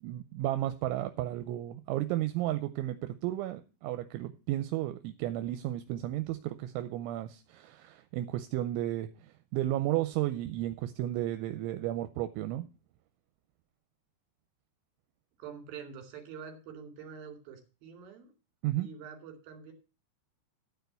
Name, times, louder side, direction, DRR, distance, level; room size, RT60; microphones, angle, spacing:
voice 1, 0.0-12.6 18.6-18.9, right 14 dB, 85° right, 10 dB, 3.0 m, -33 dB
voice 2, 15.4-18.3 18.8-19.7, right 7 dB, 55° right, 4 dB, 3.9 m, -46 dB
12.0 x 4.6 x 7.9 m, 0.34 s
omnidirectional pair, 5.4 m